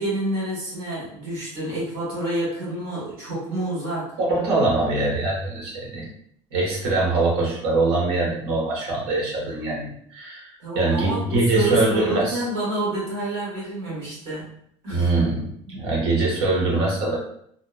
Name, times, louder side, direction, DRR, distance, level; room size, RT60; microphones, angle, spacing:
voice 1, 0.0-4.2 10.6-14.5 14.8-15.2 15.6-15.8, right 2 dB, 45° right, -7 dB, 1.2 m, -28 dB
voice 2, 4.2-6.0 6.5-12.4 14.9-15.4 15.7-17.2, right 2 dB, 80° right, -3 dB, 1.1 m, -23 dB
2.8 x 2.0 x 2.3 m, 0.67 s
cardioid pair, 175°, 13 cm